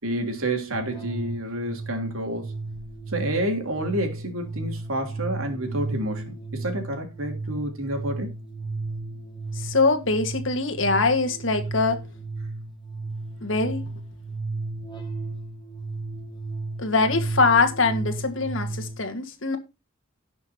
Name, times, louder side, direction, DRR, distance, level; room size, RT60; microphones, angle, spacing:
voice 1, 0.0-2.5 3.1-8.3, right 1 dB, 80° right, 3.1 m, -29 dB
sound 1, 0.7-19.0, right 3 dB, 20° left, 1.9 m, -34 dB
voice 2, 9.5-12.0 13.4-13.8 16.8-19.6, left 3 dB, 65° left, 1.7 m, -23 dB
17.5 x 6.3 x 2.9 m
head